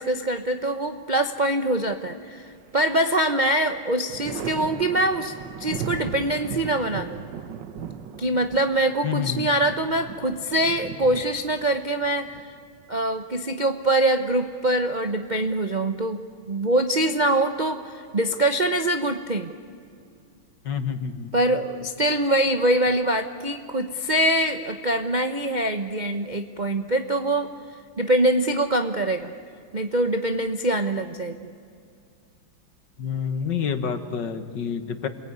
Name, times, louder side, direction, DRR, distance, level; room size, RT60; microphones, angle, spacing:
voice 1, 0.0-7.2 8.2-12.4 12.9-16.2 16.5-19.5 21.3-27.5 28.0-29.3 29.7-31.3, right 1 dB, 40° right, 6 dB, 0.6 m, -24 dB
Thunder, 2.4-3.2 3.6-13.2 14.7-15.5, right 7 dB, 65° right, 1.7 m, -37 dB
voice 2, 9.0-9.5 20.7-21.3 33.0-35.1, left 7 dB, 65° left, 10 dB, 2.0 m, -28 dB
29.0 x 21.5 x 9.5 m, 2.3 s
omnidirectional pair, 2.2 m